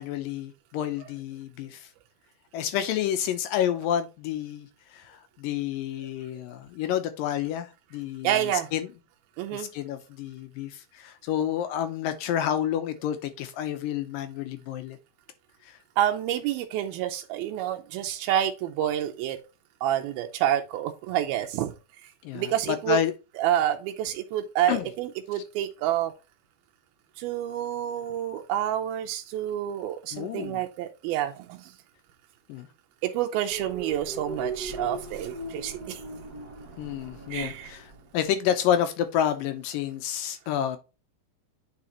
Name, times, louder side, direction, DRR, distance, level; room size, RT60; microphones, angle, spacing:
voice 1, 0.0-1.9 2.5-8.9 9.5-15.0 15.7-15.8 22.2-23.1 24.7-24.9 30.1-30.6 32.5-32.7 36.8-37.9 38.1-40.8, left 10 dB, 80° left, 2.2 m, -29 dB
voice 2, 8.2-8.7 9.4-9.7 16.0-19.4 19.8-21.8 22.3-23.0 23.4-26.1 27.2-31.7 33.0-36.0 37.3-37.7, right 11 dB, 85° right, 2.5 m, -28 dB
sound 1, 33.5-38.4, right 2 dB, 40° right, 1.5 m, -38 dB
9.3 x 4.9 x 2.9 m
omnidirectional pair, 4.4 m